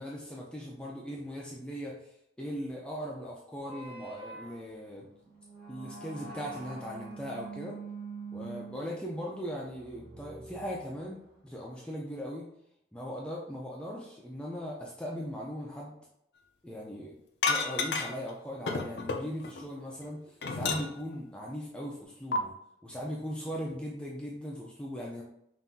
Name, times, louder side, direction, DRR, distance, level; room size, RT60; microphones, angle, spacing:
voice 1, 0.0-5.1 5.7-7.8 8.3-12.5 12.9-15.9 16.6-17.2 17.4-22.5 22.8-25.2, equal, 5° left, -3 dB, 0.4 m, -39 dB
sound 1, 3.6-11.4, right 4 dB, 55° right, 1.6 m, -45 dB
sound 2, 17.4-18.3 18.7-19.6 20.0-21.2 22.3-22.4, left 4 dB, 70° left, 0.5 m, -31 dB
5.6 x 2.6 x 2.7 m, 0.76 s
head